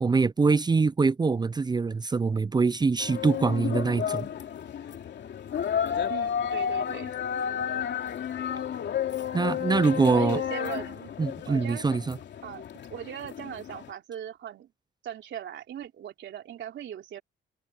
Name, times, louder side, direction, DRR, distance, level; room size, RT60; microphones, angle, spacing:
voice 1, 0.0-4.3 9.3-10.4 11.2-12.2, right 4 dB, 20° right, 0.5 m, -24 dB
sound 1, 3.0-13.9, left 8 dB, 60° left, 3.0 m, -32 dB
voice 2, 6.1-7.1 10.1-11.1 11.5-11.8 12.4-12.6 12.9-14.7 15.0-17.2, right 10 dB, 65° right, 3.7 m, -39 dB
cardioid pair, 90°, 20 cm